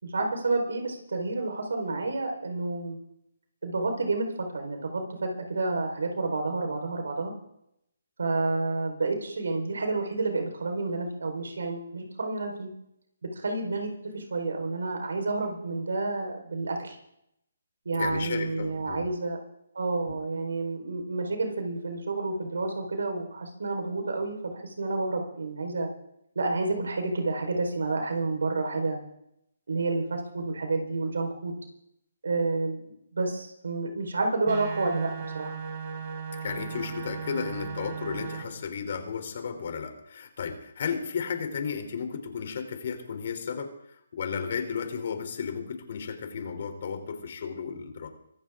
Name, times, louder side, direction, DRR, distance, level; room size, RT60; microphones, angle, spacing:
voice 1, 0.0-3.0 3.6-7.3 8.2-12.7 13.3-17.0 17.8-19.4 19.7-25.9 26.3-29.0 29.7-31.6 32.2-32.8 33.1-35.6, right 3 dB, 75° right, 3 dB, 4.5 m, -30 dB
voice 2, 18.0-19.1 20.0-20.2 36.4-48.1, left 6 dB, 55° left, 6 dB, 3.4 m, -34 dB
sound 1, 34.5-38.4, right 6 dB, 45° right, 4.6 m, -36 dB
24.0 x 14.5 x 3.8 m, 0.78 s
hypercardioid pair, 150°, 0 cm